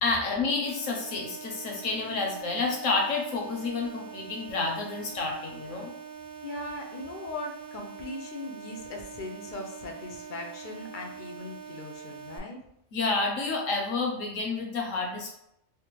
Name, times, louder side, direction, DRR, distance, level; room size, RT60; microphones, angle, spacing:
voice 1, 0.0-5.9 12.9-15.4, left 3 dB, 80° left, 0 dB, 1.2 m, -29 dB
sound 1, 0.7-12.4, right 7 dB, 60° right, 0.6 m, -44 dB
voice 2, 6.4-12.6, left 2 dB, 60° left, 1 dB, 0.5 m, -39 dB
3.4 x 2.1 x 3.0 m, 0.77 s
omnidirectional pair, 1.3 m